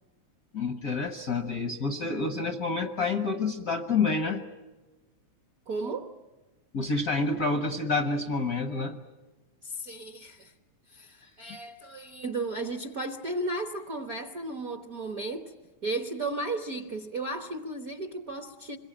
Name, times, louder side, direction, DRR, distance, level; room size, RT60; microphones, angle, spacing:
voice 1, 0.5-4.4 6.7-9.0 11.4-11.6, left 3 dB, 65° left, 6 dB, 0.9 m, -28 dB
voice 2, 5.7-6.1 9.6-10.5 10.9-15.5 15.8-18.8, right 2 dB, 60° right, 5 dB, 0.9 m, -34 dB
27.0 x 22.5 x 8.8 m, 1.1 s
omnidirectional pair, 3.3 m